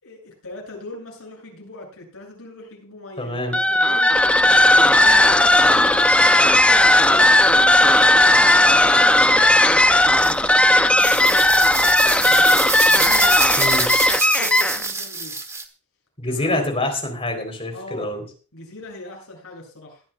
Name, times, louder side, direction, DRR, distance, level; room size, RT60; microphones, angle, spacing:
voice 1, 0.0-4.1 4.5-6.5 7.0-11.6 12.3-13.8 14.4-15.4 16.2-16.6 17.7-18.1 18.5-20.0, left 2 dB, 70° left, -1 dB, 7.7 m, -40 dB
voice 2, 3.2-3.6 13.6-13.9 16.2-18.2, left 1 dB, 25° left, 4 dB, 3.7 m, -26 dB
sound 1, 3.5-14.9, left 1 dB, 5° left, 0.6 m, -15 dB
sound 2, 10.2-10.3 10.9-15.6, right 3 dB, 15° right, 1.3 m, -25 dB
20.5 x 12.0 x 2.4 m, 0.36 s
head